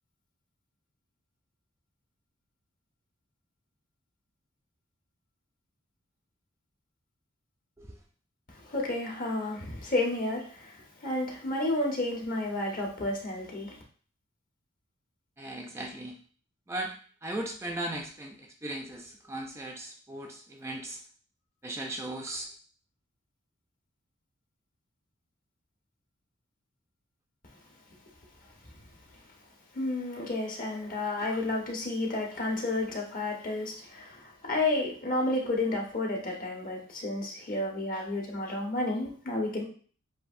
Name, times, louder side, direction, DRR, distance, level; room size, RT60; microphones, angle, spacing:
voice 1, 8.5-13.8 29.7-39.6, left 2 dB, 45° left, 1.2 m, -31 dB
voice 2, 15.4-16.1 16.7-16.9 17.2-21.0 21.6-22.5 31.2-31.3, right 1 dB, 15° right, 0.4 m, -37 dB
7.7 x 2.6 x 2.6 m
head